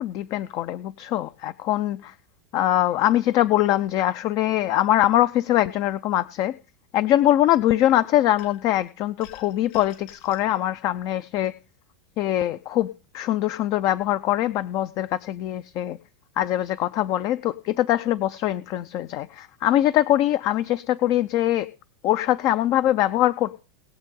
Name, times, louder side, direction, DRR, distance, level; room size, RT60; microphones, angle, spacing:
voice 1, 0.0-2.1 2.5-6.5 6.9-11.5 12.2-12.9 13.1-16.0 16.4-21.7 22.0-23.6, left 13 dB, 45° left, 13 dB, 0.6 m, -22 dB
sound 1, 8.4-8.8 9.2-10.5, left 10 dB, 65° left, 4.4 m, -48 dB
20.0 x 7.5 x 3.7 m, 0.33 s
hypercardioid pair, 115°, 8 cm